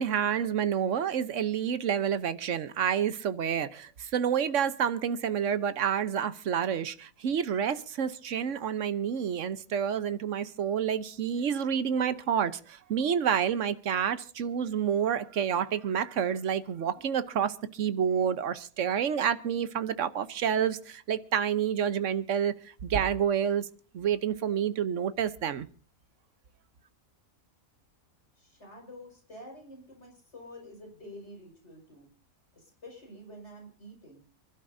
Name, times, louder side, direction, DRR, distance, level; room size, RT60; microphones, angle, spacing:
voice 1, 0.0-22.5 22.8-23.7 23.9-25.7, right 8 dB, 60° right, 1.2 m, -29 dB
voice 2, 28.4-32.1 32.5-34.2, left 1 dB, 50° left, 5.8 m, -48 dB
29.0 x 12.0 x 2.7 m
omnidirectional pair, 1.6 m